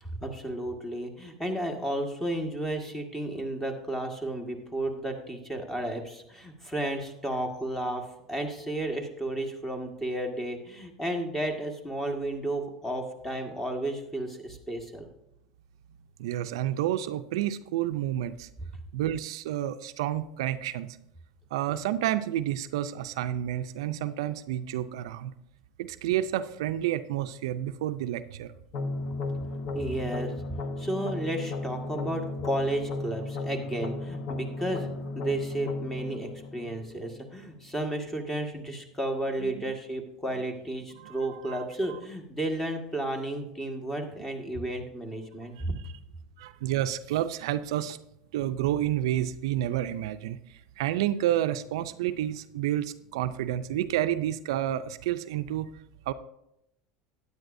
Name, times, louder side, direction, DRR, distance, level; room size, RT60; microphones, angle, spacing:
voice 1, 0.0-15.1 29.7-30.3 30.8-34.9 35.1-45.7, right 1 dB, 10° left, 4 dB, 1.6 m, -33 dB
voice 2, 16.2-18.5 18.9-21.0 21.5-25.3 25.8-28.5 39.4-39.5 41.0-41.1 41.4-41.6 46.4-48.0 48.3-50.4 50.8-55.7 56.1-56.2, right 12 dB, 80° right, 12 dB, 0.4 m, -30 dB
sound 1, 28.7-37.7, left 3 dB, 60° left, 1.0 m, -35 dB
12.5 x 9.5 x 2.6 m, 0.81 s
hypercardioid pair, 100°, 3 cm